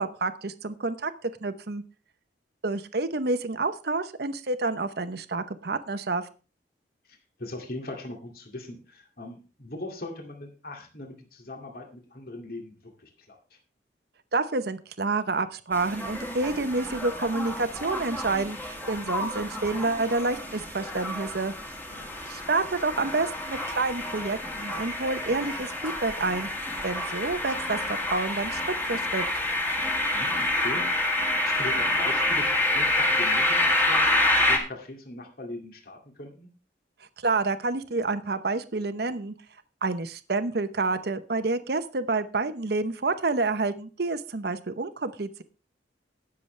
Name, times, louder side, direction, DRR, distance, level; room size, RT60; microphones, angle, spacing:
voice 1, 0.0-1.8 2.6-6.2 14.3-21.5 22.3-26.5 26.8-28.6 28.9-29.3 37.2-39.3 39.8-45.4, right 3 dB, 60° right, 11 dB, 0.8 m, -28 dB
voice 2, 7.1-13.6 21.9-22.1 30.1-36.5, left 1 dB, 55° left, 2 dB, 2.3 m, -40 dB
sound 1, 15.7-34.6, left 2 dB, 10° left, 1.9 m, -28 dB
19.0 x 7.0 x 3.2 m, 0.34 s
head